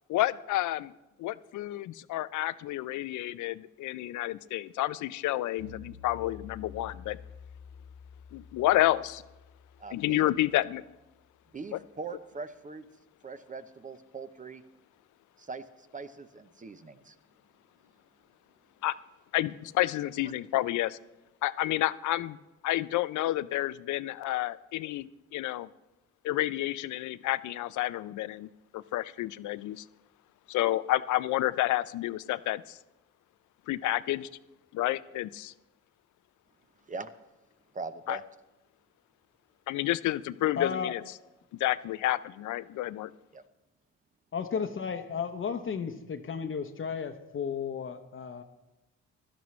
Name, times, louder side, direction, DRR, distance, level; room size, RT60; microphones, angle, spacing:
voice 1, 0.1-0.9 1.2-7.2 8.3-9.2 9.9-10.8 18.8-19.0 19.3-21.0 21.4-22.4 22.6-25.7 26.2-29.8 30.5-32.8 33.7-34.3 34.7-35.5 38.1-38.2 39.7-41.0 41.6-43.1, left 15 dB, 75° left, 17 dB, 0.5 m, -30 dB
sound 1, 5.6-10.9, left 6 dB, 50° right, 3.5 m, -49 dB
voice 2, 9.8-10.3 11.5-12.9 13.2-14.6 15.4-17.2 20.2-20.3 36.9-37.1 37.7-38.2 43.3-43.4, right 4 dB, 25° right, 11 dB, 0.6 m, -41 dB
voice 3, 40.6-40.9 44.3-48.4, left 6 dB, 40° left, 6 dB, 0.8 m, -34 dB
16.0 x 12.5 x 3.2 m, 1.0 s
cardioid pair, 90°, 30 cm